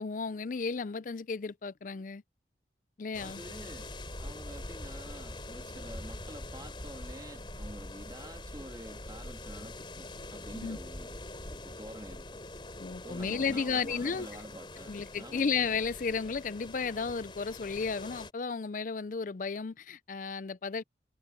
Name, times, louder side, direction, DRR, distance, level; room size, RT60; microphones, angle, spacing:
voice 1, 0.0-2.2 3.0-3.4 10.5-10.8 12.8-14.3 14.9-20.8, left 5 dB, 45° left, 0.4 m, -33 dB
sound 1, 3.1-18.3, left 1 dB, 25° left, 3.9 m, -44 dB
voice 2, 3.2-3.9 4.2-12.4 13.0-15.4, right 1 dB, 20° right, 2.6 m, -48 dB
head